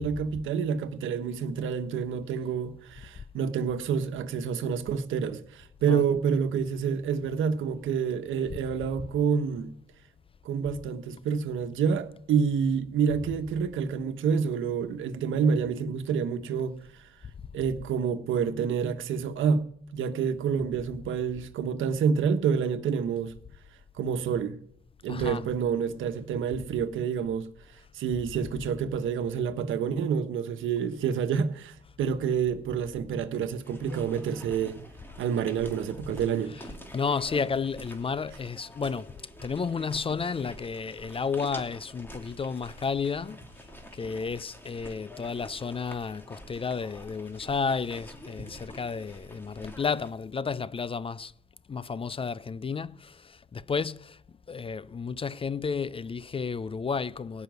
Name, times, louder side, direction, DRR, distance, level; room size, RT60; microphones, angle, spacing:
voice 1, 0.0-9.7 10.4-16.7 17.5-19.6 19.9-23.3 24.0-24.6 25.0-27.5 27.9-34.8 35.2-36.6, right 6 dB, 80° right, 1.3 m, -28 dB
voice 2, 25.1-25.4 36.5-39.2 39.4-43.4 43.9-51.3 51.7-54.2 54.5-57.4, left 5 dB, 25° left, 0.5 m, -32 dB
sound 1, 33.6-50.1, equal, 10° left, 2.7 m, -47 dB
17.0 x 6.2 x 9.4 m
cardioid pair, 90°, 20 cm